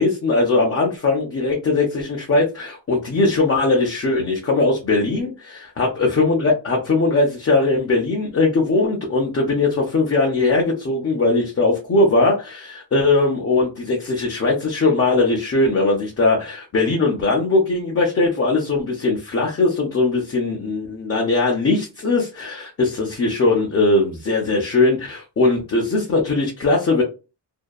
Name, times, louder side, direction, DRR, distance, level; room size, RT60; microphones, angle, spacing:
voice 1, 0.0-27.0, left 3 dB, 35° left, -1 dB, 0.7 m, -20 dB
2.7 x 2.2 x 2.2 m, 0.30 s
wide cardioid pair, 115°, 42 cm